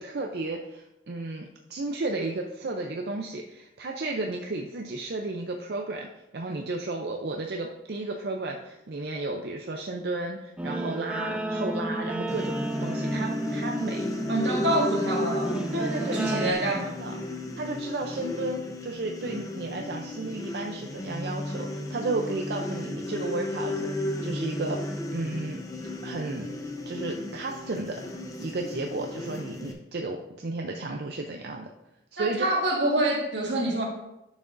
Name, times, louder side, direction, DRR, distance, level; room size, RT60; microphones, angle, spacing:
voice 1, 0.0-14.1 15.7-16.4 17.0-17.1 17.6-25.6 26.0-26.5 26.9-28.0 28.4-31.7 32.1-32.5, right 2 dB, 65° right, 2 dB, 0.5 m, -33 dB
Guitar, 10.6-16.5, right 1 dB, 5° right, 0.3 m, -32 dB
sound 1, 12.3-29.7, left 1 dB, 20° left, 0.7 m, -34 dB
voice 2, 14.3-15.5 16.0-16.9 32.2-33.8, right 1 dB, 85° right, 0 dB, 1.6 m, -26 dB
10.5 x 6.2 x 2.6 m, 0.93 s
head